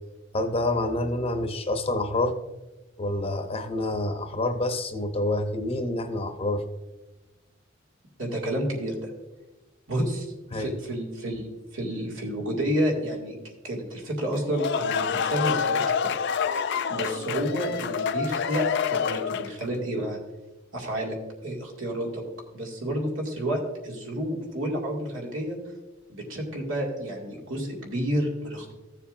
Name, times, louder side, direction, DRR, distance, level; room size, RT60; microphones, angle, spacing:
voice 1, 0.3-2.4 3.0-6.6 10.5-10.7, left 2 dB, 30° left, 6 dB, 0.7 m, -27 dB
voice 2, 8.2-9.1 9.9-11.5 11.7-13.3 13.6-16.1 16.9-20.2 20.7-21.2 21.4-22.2 22.5-25.6 26.1-28.7, equal, 80° right, -1 dB, 2.2 m, -30 dB
sound 1, 14.3-19.7, left 6 dB, 60° left, 0.4 m, -27 dB
15.0 x 7.1 x 2.5 m, 1.1 s
head